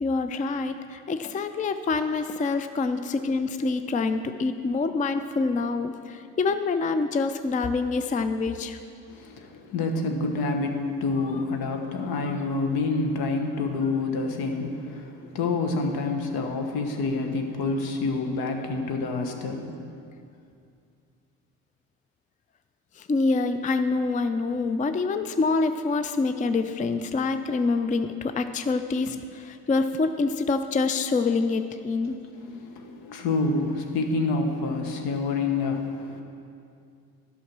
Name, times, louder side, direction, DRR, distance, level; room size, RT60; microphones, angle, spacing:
voice 1, 0.0-8.8 23.0-32.2, left 3 dB, 20° left, 9 dB, 0.4 m, -26 dB
voice 2, 9.1-19.7 32.0-36.2, left 3 dB, 70° left, 4 dB, 1.2 m, -28 dB
11.5 x 5.6 x 6.0 m, 2.5 s
supercardioid pair, 60°, 38 cm